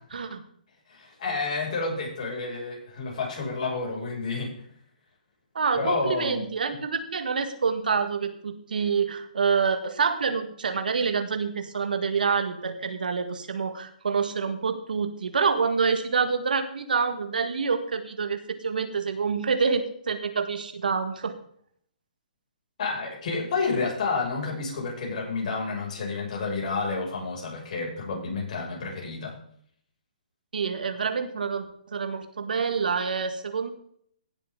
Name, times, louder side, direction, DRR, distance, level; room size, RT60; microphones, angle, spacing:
voice 1, 0.1-0.4 5.6-21.3 30.5-31.7 31.9-33.7, right 5 dB, 75° right, 9 dB, 1.6 m, -27 dB
voice 2, 0.9-4.6 5.7-6.4 22.8-29.3, left 4 dB, 55° left, -2 dB, 6.3 m, -30 dB
17.0 x 7.5 x 3.8 m, 0.63 s
hypercardioid pair, 145°, 5 cm